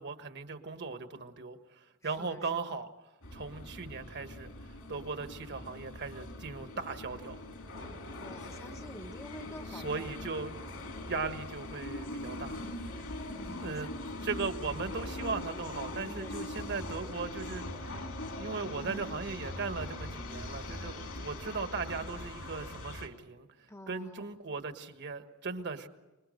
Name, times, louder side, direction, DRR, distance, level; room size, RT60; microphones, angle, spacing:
voice 1, 0.0-2.9 3.3-4.5 4.9-7.4 9.7-10.5 11.1-12.6 13.6-13.9 14.2-17.6 18.4-23.5 23.9-25.9, right 4 dB, 50° right, 8 dB, 1.6 m, -38 dB
voice 2, 2.0-2.8 8.2-10.2 13.4-13.6 16.2-16.6 23.7-24.3, left 1 dB, 15° left, 5 dB, 0.9 m, -49 dB
sound 1, 3.2-23.1, left 1 dB, 65° left, 3.2 m, -41 dB
26.0 x 21.0 x 6.6 m, 1.1 s
head